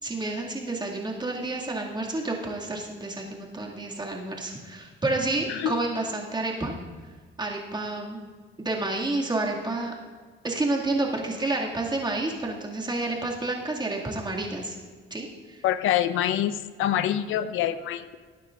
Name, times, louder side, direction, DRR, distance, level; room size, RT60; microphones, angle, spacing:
voice 1, 0.0-6.7 7.4-8.2 8.6-9.9 10.4-14.8 15.1-15.6, right 2 dB, 20° right, -1 dB, 2.2 m, -29 dB
voice 2, 15.6-18.2, left 11 dB, 85° left, 13 dB, 0.6 m, -26 dB
19.0 x 9.3 x 2.5 m, 1.5 s
cardioid pair, 90°, 20 cm